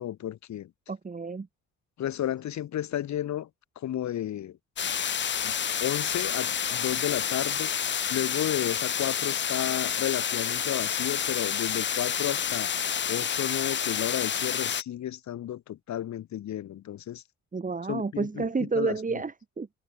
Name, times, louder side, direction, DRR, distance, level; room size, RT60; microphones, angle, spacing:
voice 1, 0.0-0.7 2.0-3.5 3.7-4.6 5.4-5.5 5.8-7.7 8.1-12.7 13.1-17.2 17.9-18.5 18.7-19.2, left 11 dB, 65° left, 1.7 m, -32 dB
voice 2, 0.9-1.5 17.5-19.7, right 4 dB, 25° right, 2.7 m, -30 dB
sound 1, 4.8-14.8, left 8 dB, 40° left, 0.8 m, -29 dB
cardioid pair, 90°, 30 cm